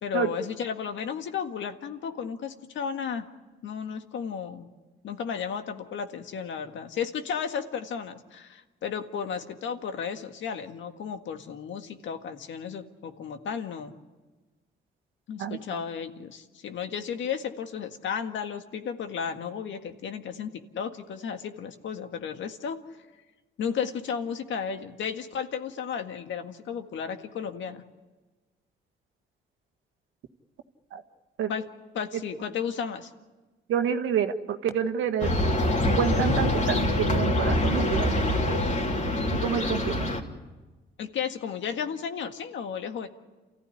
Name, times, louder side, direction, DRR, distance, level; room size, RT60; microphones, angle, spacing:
voice 1, 0.0-3.2 3.6-4.7 5.0-13.9 15.3-22.8 23.6-27.8 31.5-31.7 31.9-33.1 41.0-43.1, left 7 dB, 70° left, 7 dB, 1.8 m, -33 dB
voice 2, 33.7-35.3 35.9-38.2 38.5-38.6 39.2-40.1, right 8 dB, 80° right, 7 dB, 1.6 m, -28 dB
sound 1, 35.2-40.2, left 1 dB, 35° left, 3.1 m, -25 dB
28.5 x 15.0 x 10.0 m, 1.2 s
cardioid pair, 90°, 20 cm